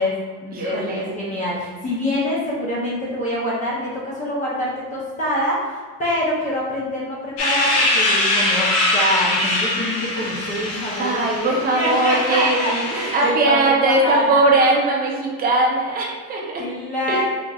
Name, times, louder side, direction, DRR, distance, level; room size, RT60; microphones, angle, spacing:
voice 1, 0.0-5.7 6.0-14.5 16.6-17.2, equal, 20° left, -6 dB, 0.5 m, -25 dB
voice 2, 0.5-1.1 11.0-16.6 17.1-17.2, right 2 dB, 25° right, -2 dB, 0.5 m, -20 dB
sound 1, 7.4-13.3, left 1 dB, 65° left, 0.8 m, -22 dB
3.6 x 2.9 x 2.3 m, 1.5 s
cardioid pair, 165°, 38 cm